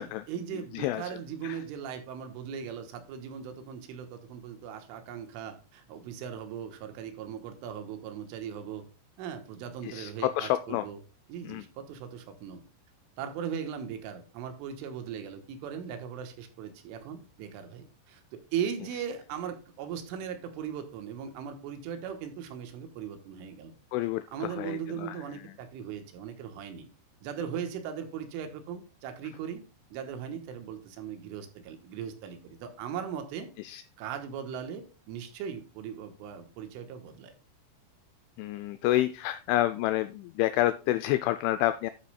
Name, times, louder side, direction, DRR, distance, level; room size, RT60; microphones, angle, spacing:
voice 1, 0.0-8.9 9.2-11.0 11.3-12.6 13.2-23.7 24.3-26.9 27.2-29.6 29.9-33.5 34.0-37.4, right 8 dB, 80° right, 7 dB, 3.5 m, -38 dB
voice 2, 9.8-10.9 11.4-11.6 23.9-25.2 33.6-33.8 38.4-41.9, left 15 dB, 85° left, 11 dB, 2.7 m, -29 dB
12.0 x 8.2 x 2.3 m, 0.33 s
omnidirectional pair, 5.9 m